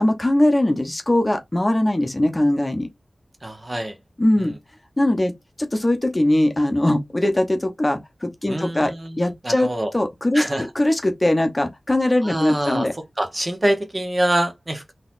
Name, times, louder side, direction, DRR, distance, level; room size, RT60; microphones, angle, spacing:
voice 1, 0.0-2.9 4.2-4.5 5.0-5.3 5.6-9.7 9.9-12.9, left 1 dB, 25° left, 0.7 m, -20 dB
voice 2, 3.4-4.0 4.4-4.5 8.5-9.9 10.3-10.7 12.2-12.9 13.2-14.9, right 1 dB, 30° right, 0.7 m, -25 dB
3.8 x 2.9 x 2.5 m
wide cardioid pair, 90°, 0 cm